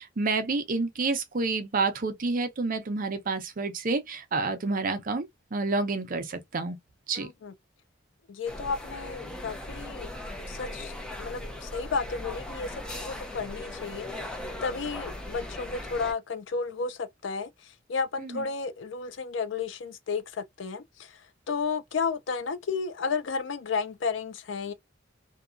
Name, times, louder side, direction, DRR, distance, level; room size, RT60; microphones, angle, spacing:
voice 1, 0.0-6.8 7.1-7.3 18.2-18.5, right 3 dB, 45° right, 0.6 m, -29 dB
voice 2, 7.1-7.5 8.3-10.1 10.5-10.9 11.2-14.3 14.6-21.2 21.5-24.7, left 5 dB, 70° left, 0.4 m, -33 dB
sound 1, 8.5-16.1, left 1 dB, 5° left, 0.5 m, -39 dB
2.8 x 2.2 x 2.4 m
head